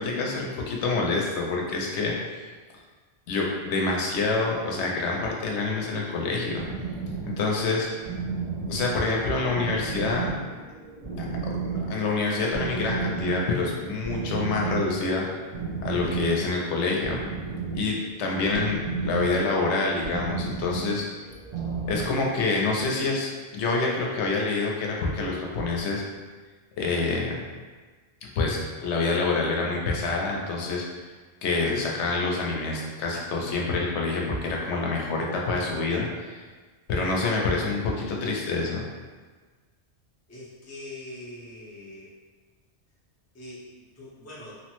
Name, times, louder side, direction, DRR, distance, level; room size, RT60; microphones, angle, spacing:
voice 1, 0.0-2.1 3.3-6.6 7.2-7.9 8.7-10.3 11.2-11.3 11.9-15.2 15.8-17.2 17.7-21.0 21.9-26.0 26.8-27.4 28.4-30.8 31.4-36.4 36.9-38.8, left 3 dB, 90° left, -1 dB, 0.9 m, -27 dB
sound 1, 6.5-22.1, right 4 dB, 45° right, 0.6 m, -33 dB
voice 2, 40.3-42.1 43.3-43.6 44.0-44.6, left 1 dB, 20° left, -7 dB, 0.5 m, -42 dB
3.0 x 2.1 x 2.9 m, 1.4 s
omnidirectional pair, 1.1 m